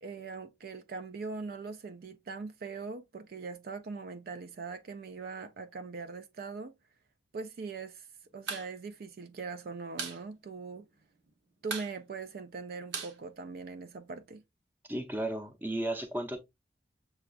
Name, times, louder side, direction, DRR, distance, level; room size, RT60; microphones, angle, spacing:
voice 1, 0.0-6.7 7.3-8.1 8.3-10.8 11.6-14.4, right 4 dB, 55° right, 0.4 m, -41 dB
sound 1, 8.3-8.7 9.0-9.1 9.4-10.2 10.5-10.6 10.9-11.3 11.6-14.0, right 5 dB, 85° right, 1.0 m, -39 dB
voice 2, 14.9-16.4, right 1 dB, 10° right, 0.6 m, -34 dB
6.7 x 2.3 x 2.3 m
head